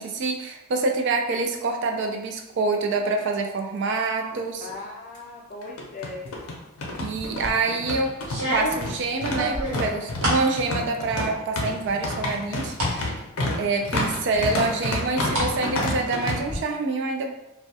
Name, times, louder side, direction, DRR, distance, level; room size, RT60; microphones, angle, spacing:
voice 1, 0.0-4.7 7.0-8.2 8.5-13.2 13.6-17.3, right 3 dB, 55° right, 3 dB, 0.3 m, -26 dB
sound 1, 4.3-4.4 4.7-4.8 5.6-16.4, left 2 dB, 85° left, 0.5 m, -29 dB
voice 2, 4.6-6.6 13.4-13.6, left 3 dB, 35° left, -1 dB, 0.4 m, -38 dB
sound 2, 7.2-7.6 8.2-10.5 10.9-11.5 11.9-13.0 13.4-13.5 14.4-15.5 15.8-16.6, equal, 70° right, 0.9 m, -29 dB
2.2 x 2.1 x 2.7 m, 0.92 s
head